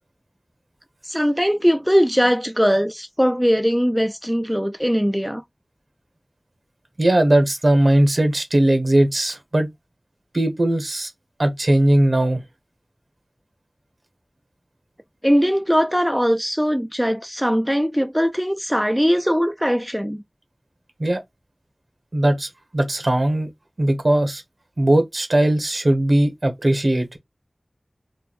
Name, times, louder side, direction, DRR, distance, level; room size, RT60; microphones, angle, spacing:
voice 1, 1.0-5.4 15.2-20.2, equal, ahead, 0.4 m, -20 dB
voice 2, 7.0-9.7 10.3-11.1 11.4-12.4 21.0-21.2 22.1-22.5 22.7-23.5 23.8-24.4 24.8-27.2, right 1 dB, 65° right, 1.1 m, -18 dB
3.2 x 2.2 x 4.1 m
wide cardioid pair, 50°, 0 cm